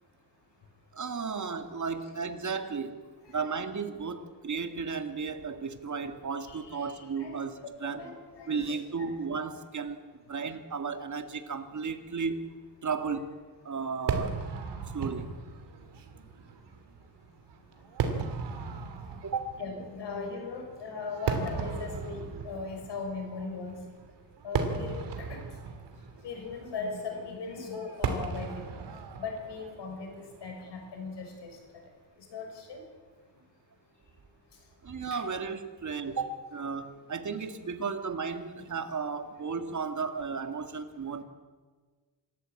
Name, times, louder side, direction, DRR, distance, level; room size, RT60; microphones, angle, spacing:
voice 1, 0.9-3.0 3.3-8.0 8.5-10.0 10.3-12.5 12.8-13.3 13.7-14.4 14.9-15.3 19.2-19.5 34.8-41.2, right 5 dB, 45° right, 8 dB, 2.0 m, -34 dB
voice 2, 6.5-8.8 19.6-23.7 24.4-25.0 25.3-25.4 26.2-28.6 29.2-31.3 32.3-32.8 35.1-35.2, left 4 dB, 80° left, 3 dB, 6.4 m, -39 dB
Fireworks, 14.1-31.4, right 5 dB, 90° right, 2.8 m, -37 dB
25.5 x 14.0 x 8.5 m, 1.5 s
cardioid pair, 105°, 41 cm